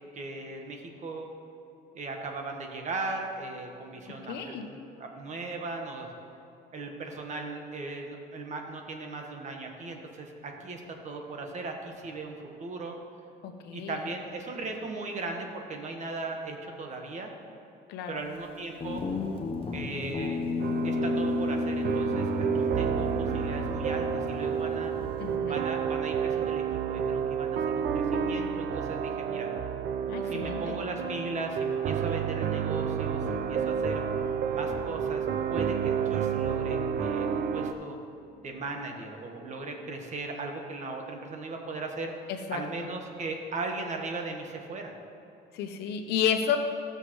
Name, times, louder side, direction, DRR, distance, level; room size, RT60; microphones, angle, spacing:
voice 1, 0.1-1.3 1.9-6.1 6.7-13.0 13.7-17.3 18.1-19.0 19.7-20.4 20.8-24.9 25.5-29.5 30.2-34.0 34.5-38.0 38.4-42.1 42.5-45.0, right 3 dB, 45° right, 2 dB, 1.4 m, -38 dB
voice 2, 4.3-4.7 13.4-14.0 17.9-18.2 25.2-25.6 30.1-30.8 33.2-33.3 42.3-42.9 45.5-46.6, left 8 dB, 90° left, 6 dB, 0.9 m, -31 dB
Guitar, 18.8-25.4, left 4 dB, 35° left, 1.0 m, -33 dB
sound 1, 20.6-37.7, right 7 dB, 65° right, 0.6 m, -30 dB
16.0 x 6.7 x 3.1 m, 2.8 s
cardioid pair, 110°, 17 cm